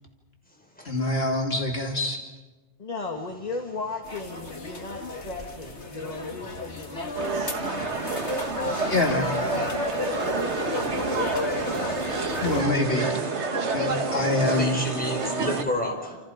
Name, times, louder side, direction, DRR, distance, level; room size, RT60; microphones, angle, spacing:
voice 1, 0.8-2.2 8.9-9.3 12.4-13.2 13.7-14.8, left 2 dB, 65° left, 2 dB, 3.0 m, -25 dB
voice 2, 2.8-7.3 8.6-9.1 9.4-11.0, left 2 dB, 35° left, 3 dB, 1.8 m, -36 dB
sound 1, 4.0-12.6, left 3 dB, 85° left, 2.3 m, -34 dB
sound 2, 7.1-15.6, right 3 dB, 85° right, 2.0 m, -28 dB
voice 3, 11.8-12.7 14.4-16.2, left 1 dB, 10° left, 1 dB, 4.7 m, -32 dB
28.5 x 27.5 x 5.1 m, 1.2 s
omnidirectional pair, 1.1 m